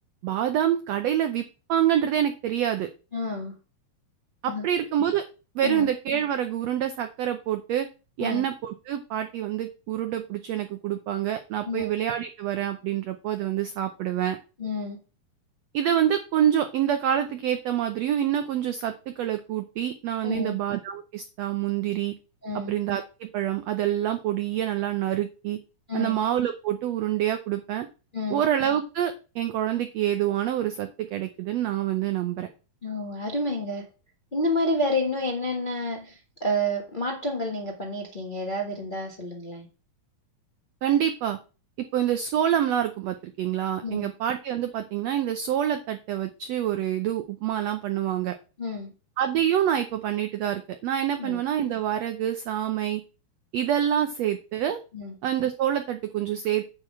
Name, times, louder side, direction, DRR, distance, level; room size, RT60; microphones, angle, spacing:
voice 1, 0.2-1.4 1.7-2.9 4.4-5.2 5.5-7.9 8.2-14.4 15.7-22.1 22.5-25.6 25.9-27.9 28.3-32.5 40.8-41.4 41.9-48.3 49.2-53.0 53.5-54.8 55.2-56.7, right 10 dB, 85° right, 8 dB, 1.4 m, -26 dB
voice 2, 3.1-3.5 4.5-4.6 5.6-5.9 8.2-8.4 11.6-11.9 14.6-15.0 20.2-20.6 22.4-22.7 25.9-26.2 28.1-28.4 32.8-33.9 34.3-39.7 43.8-44.1 48.6-48.9 51.2-51.4 54.9-55.1, left 1 dB, 40° left, 1 dB, 0.7 m, -29 dB
9.5 x 3.9 x 7.3 m, 0.32 s
omnidirectional pair, 3.9 m